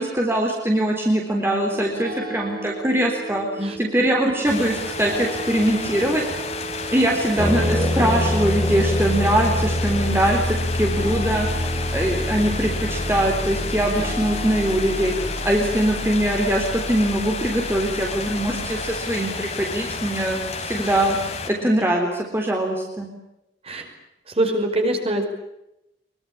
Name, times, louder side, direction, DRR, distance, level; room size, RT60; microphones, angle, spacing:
voice 1, 0.0-6.3 6.9-11.7 11.9-21.2 21.5-22.1 22.3-23.1, right 1 dB, 15° right, 0 dB, 3.7 m, -22 dB
sound 1, 1.7-15.3, right 2 dB, 50° right, 7.1 m, -36 dB
sound 2, 4.4-21.5, left 4 dB, 40° left, 3.4 m, -31 dB
sound 3, 7.4-19.0, left 1 dB, 10° left, 3.3 m, -27 dB
voice 2, 7.5-8.3 23.6-23.9 24.3-25.3, right 1 dB, 35° right, 4 dB, 5.2 m, -24 dB
23.5 x 23.5 x 8.8 m, 0.87 s
head